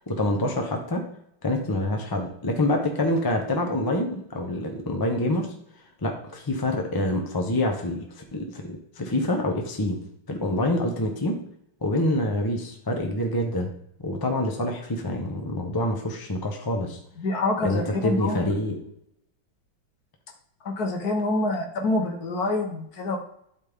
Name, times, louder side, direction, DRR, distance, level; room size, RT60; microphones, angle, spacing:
voice 1, 0.1-1.1 1.4-5.5 6.0-10.0 10.3-11.4 11.8-13.7 14.0-17.0 17.6-18.8, left 1 dB, 20° left, 2 dB, 0.6 m, -26 dB
voice 2, 17.2-18.4 20.6-23.2, left 2 dB, 55° left, 3 dB, 1.5 m, -26 dB
12.0 x 4.3 x 3.6 m, 0.74 s
omnidirectional pair, 2.2 m